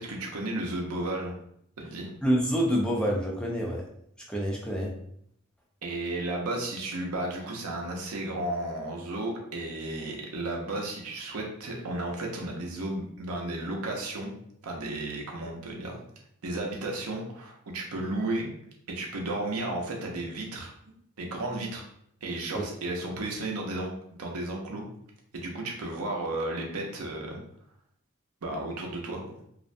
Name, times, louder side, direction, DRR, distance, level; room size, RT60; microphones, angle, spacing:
voice 1, 0.0-1.4 1.8-2.1 5.8-14.3 14.6-16.0 16.4-18.5 18.9-20.7 21.2-21.9 22.2-23.9 24.2-24.8 25.3-27.4 28.4-29.2, right 2 dB, 85° right, 0 dB, 0.6 m, -33 dB
voice 2, 2.2-3.8 4.2-4.9 22.5-22.6, equal, 5° left, -2 dB, 0.3 m, -27 dB
2.4 x 2.1 x 2.5 m, 0.70 s
head